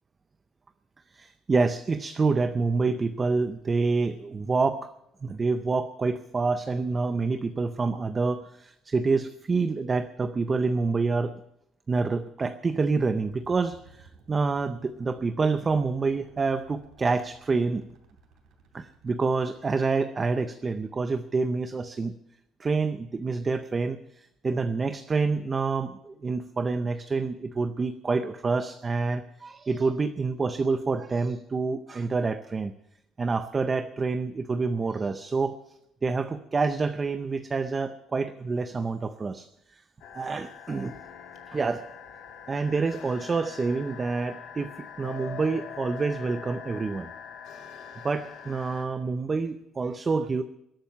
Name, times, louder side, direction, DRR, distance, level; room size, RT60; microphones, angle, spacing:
voice 1, 1.1-4.9 5.2-11.4 11.9-17.8 18.7-22.2 22.6-32.7 33.2-35.6 36.0-39.5 39.7-39.8 40.1-41.0 41.5-41.8 42.5-47.1 48.0-50.4, right 4 dB, 20° right, 11 dB, 0.5 m, -27 dB
sound 1, 13.3-19.7, right 4 dB, 50° right, 3.2 m, -57 dB
sound 2, 40.0-48.9, left 7 dB, 55° left, 2.3 m, -43 dB
21.0 x 9.0 x 6.7 m, 0.80 s
cardioid pair, 170°, 0 cm